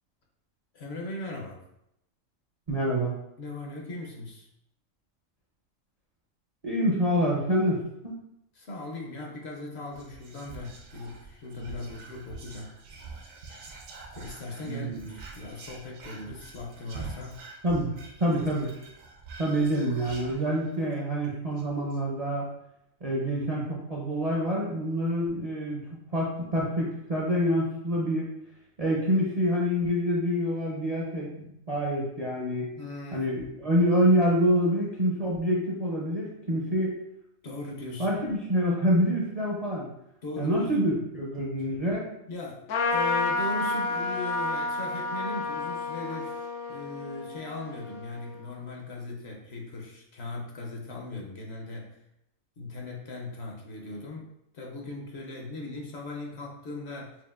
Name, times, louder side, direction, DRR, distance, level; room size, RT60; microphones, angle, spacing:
voice 1, 0.7-1.6 3.4-4.5 8.5-12.8 14.1-17.5 32.8-33.3 37.4-38.2 40.2-40.7 42.3-42.6 42.9-52.0 52.6-57.2, left 2 dB, 60° left, 0 dB, 0.8 m, -39 dB
voice 2, 2.7-3.1 6.6-8.1 14.6-15.1 17.6-17.9 18.2-18.7 19.4-22.5 23.0-25.8 26.1-28.3 28.8-32.7 33.1-37.0 38.0-39.9 40.4-42.1, equal, 45° right, -4 dB, 0.5 m, -26 dB
Whispering, 9.9-20.9 21.3-21.4 21.6-22.0, right 3 dB, 75° right, 1.1 m, -45 dB
Trumpet, 42.7-48.5, left 3 dB, 90° left, 1.1 m, -30 dB
5.6 x 2.5 x 2.4 m, 0.81 s
omnidirectional pair, 1.4 m